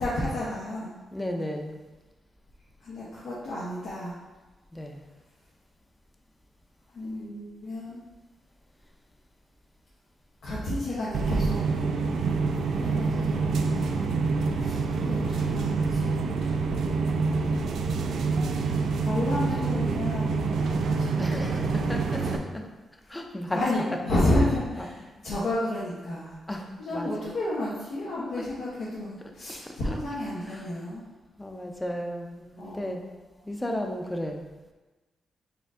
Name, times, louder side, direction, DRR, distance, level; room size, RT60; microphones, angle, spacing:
voice 1, 0.0-0.9 2.8-4.1 6.9-8.0 10.4-11.6 12.8-14.0 14.6-16.1 19.0-21.9 22.2-22.4 23.5-26.4 26.8-31.0 32.6-32.9, left 1 dB, 80° left, -8 dB, 0.9 m, -31 dB
voice 2, 1.1-1.8 4.7-5.0 21.2-22.7 23.1-23.6 24.8-24.9 26.5-26.6 26.9-27.1 28.4-28.5 29.6-29.7 30.5-30.7 31.4-33.0 33.5-34.5, left 1 dB, 15° left, 3 dB, 0.5 m, -34 dB
sound 1, 11.1-22.4, right 4 dB, 80° right, 0.3 m, -26 dB
4.3 x 2.6 x 3.6 m, 1.2 s
cardioid pair, 105°, 0 cm